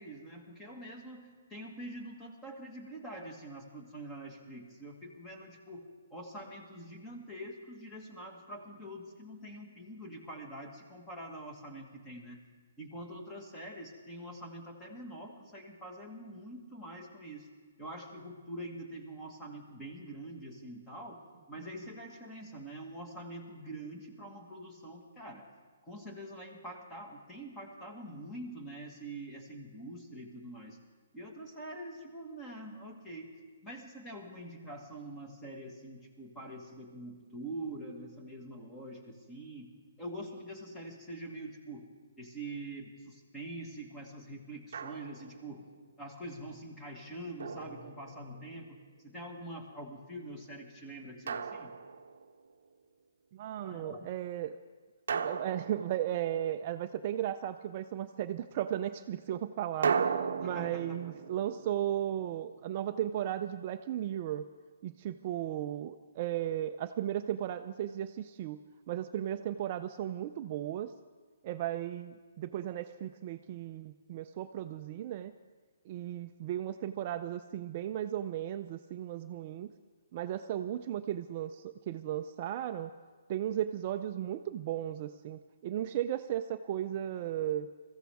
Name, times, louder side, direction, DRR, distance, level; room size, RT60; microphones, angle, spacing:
voice 1, 0.0-12.4 12.8-17.5 17.8-21.2 21.5-25.5 25.8-30.8 31.1-33.3 33.6-39.7 40.0-41.9 42.2-45.7 46.0-51.7 53.6-54.1 60.4-61.0, right 1 dB, 10° left, 1 dB, 1.6 m, -45 dB
Drum, 44.7-45.4 47.4-48.5 51.3-52.4 55.1-56.7 59.8-62.8, right 6 dB, 65° right, 0.7 m, -36 dB
voice 2, 53.3-54.5 55.1-60.0 60.4-64.4 64.8-68.6 68.9-70.9 71.4-75.3 75.9-79.7 80.1-82.9 83.3-87.7, right 11 dB, 35° right, 8 dB, 0.4 m, -35 dB
21.5 x 15.0 x 3.5 m, 1.5 s
hypercardioid pair, 165°, 0 cm